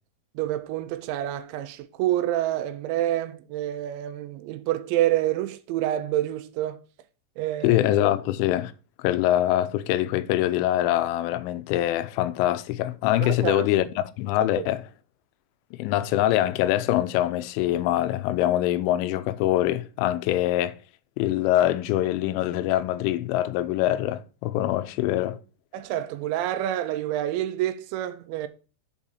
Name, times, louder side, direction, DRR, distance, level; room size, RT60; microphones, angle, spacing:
voice 1, 0.4-6.8 7.4-7.8 13.2-13.6 14.4-14.7 25.7-28.5, right 13 dB, 85° right, 2.7 m, -28 dB
voice 2, 7.6-8.7 9.0-14.8 15.8-20.8 21.2-25.4, left 13 dB, 90° left, 3.1 m, -24 dB
7.1 x 4.8 x 5.4 m
omnidirectional pair, 5.4 m